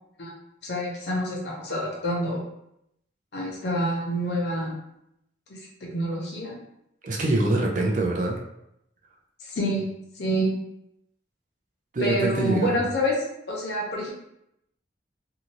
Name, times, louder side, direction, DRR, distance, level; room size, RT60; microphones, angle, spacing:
voice 1, 0.6-2.4 3.3-4.7 5.5-6.5 9.4-9.9 10.1-10.5 12.0-14.1, equal, 65° left, -2 dB, 0.8 m, -27 dB
voice 2, 7.0-8.4 11.9-12.8, right 2 dB, 45° right, 0 dB, 0.5 m, -24 dB
2.8 x 2.5 x 2.9 m, 0.79 s
head